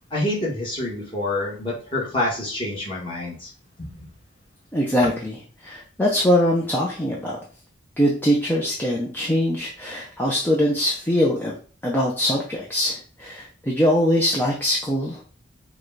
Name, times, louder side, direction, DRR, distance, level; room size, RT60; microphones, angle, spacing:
voice 1, 0.1-3.5 3.8-3.9, left 1 dB, 25° left, -4 dB, 1.4 m, -27 dB
voice 2, 4.7-7.4 8.0-11.5 11.8-15.2, equal, 10° left, -3 dB, 0.5 m, -22 dB
4.8 x 2.3 x 3.9 m, 0.40 s
head